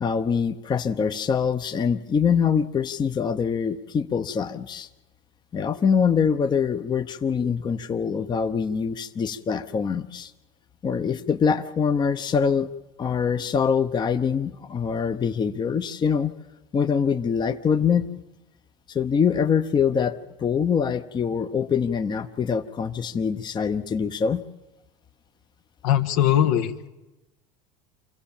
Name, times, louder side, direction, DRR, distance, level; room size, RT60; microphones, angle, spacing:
voice 1, 0.0-4.9 5.5-10.3 10.8-12.7 13.0-16.3 16.7-18.1 18.9-24.4, left 6 dB, 25° left, 8 dB, 0.9 m, -24 dB
voice 2, 25.8-26.9, left 11 dB, 75° left, 8 dB, 1.4 m, -21 dB
26.0 x 16.0 x 7.3 m, 1.0 s
supercardioid pair, 100°, 16 cm